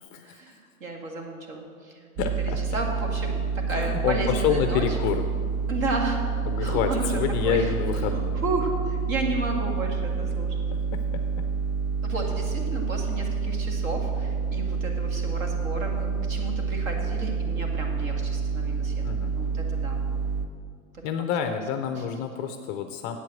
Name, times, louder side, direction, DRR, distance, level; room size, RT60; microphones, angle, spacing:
voice 1, 0.0-2.1 2.4-5.0 5.7-6.3 6.6-10.6 12.0-20.0 20.9-21.0 21.9-22.1, right 2 dB, 70° right, 2 dB, 2.1 m, -33 dB
voice 2, 2.2-2.6 3.7-5.2 6.5-8.4 10.9-11.2 19.0-19.4 21.0-23.2, left 8 dB, 25° left, 8 dB, 0.3 m, -28 dB
sound 1, 2.2-20.5, right 5 dB, 55° right, 0.9 m, -28 dB
8.1 x 7.5 x 7.5 m, 2.2 s
hypercardioid pair, 110°, 41 cm